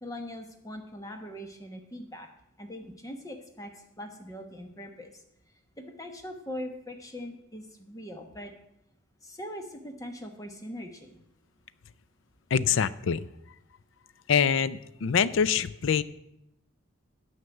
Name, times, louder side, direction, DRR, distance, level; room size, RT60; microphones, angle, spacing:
voice 1, 0.0-2.3 2.6-3.7 4.0-5.2 5.8-8.5 9.2-11.2, equal, 15° left, 5 dB, 1.1 m, -41 dB
voice 2, 12.5-13.3 14.3-16.0, left 7 dB, 60° left, 17 dB, 0.4 m, -25 dB
9.5 x 5.7 x 7.7 m, 0.79 s
head